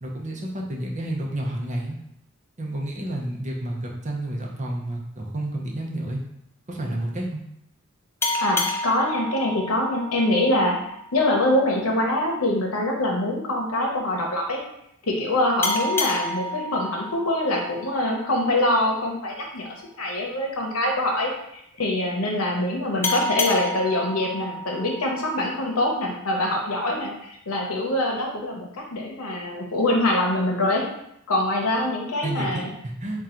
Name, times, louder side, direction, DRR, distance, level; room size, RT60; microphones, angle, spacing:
voice 1, 0.0-2.0 2.6-6.2 6.7-7.4 32.2-33.2, right 1 dB, 35° right, -1 dB, 0.7 m, -30 dB
sound 1, 8.2-11.4 15.6-18.8 23.0-26.0, left 1 dB, 10° left, 0.3 m, -30 dB
voice 2, 8.4-10.8 11.1-14.6 15.0-19.7 20.0-30.8 31.3-32.7, left 1 dB, 80° left, 0 dB, 0.8 m, -24 dB
3.7 x 2.4 x 4.3 m, 0.77 s
head